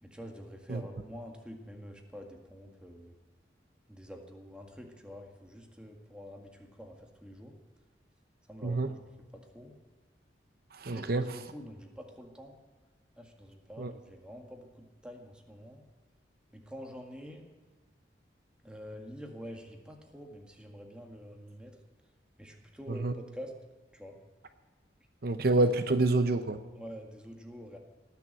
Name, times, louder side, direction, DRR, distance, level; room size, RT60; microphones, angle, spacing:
voice 1, 0.0-3.1 3.9-6.9 7.2-7.5 8.5-9.0 9.3-9.7 10.9-12.5 13.2-15.8 16.5-17.5 18.6-21.7 22.4-23.5 23.9-24.2 26.7-27.8, equal, 5° right, 2 dB, 1.9 m, -47 dB
voice 2, 10.7-11.4 13.8-13.9 22.9-23.1 25.2-26.6, right 2 dB, 60° right, 9 dB, 0.8 m, -27 dB
18.5 x 7.1 x 9.0 m, 1.4 s
head